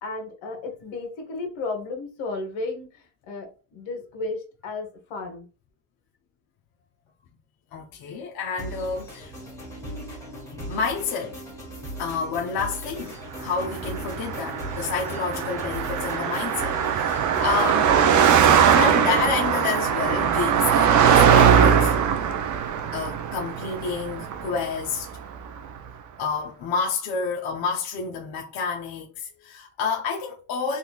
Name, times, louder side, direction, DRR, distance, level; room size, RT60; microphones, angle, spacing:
voice 1, 0.0-5.5, left 3 dB, 70° left, 1.2 m, -34 dB
voice 2, 7.7-9.3 10.5-11.4 12.0-17.9 18.7-21.9 22.9-25.1 26.2-30.8, left 5 dB, 50° left, 0.7 m, -29 dB
sound 1, 8.6-18.6, equal, 5° left, 1.2 m, -38 dB
Car passing by, 13.6-25.2, right 8 dB, 40° right, 0.5 m, -21 dB
3.7 x 2.4 x 2.3 m
supercardioid pair, 95°, 48 cm